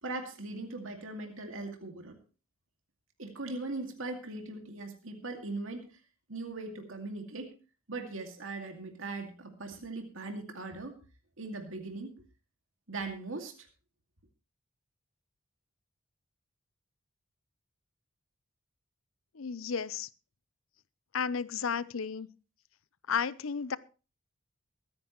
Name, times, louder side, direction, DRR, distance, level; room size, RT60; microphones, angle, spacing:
voice 1, 0.0-2.2 3.2-6.0 6.3-7.5 7.9-11.0 11.4-12.1 12.9-13.7, right 3 dB, 75° right, 4 dB, 2.3 m, -40 dB
voice 2, 19.3-20.1 21.1-22.3 23.1-23.8, left 6 dB, 80° left, 17 dB, 0.6 m, -33 dB
22.5 x 9.7 x 3.1 m, 0.33 s
head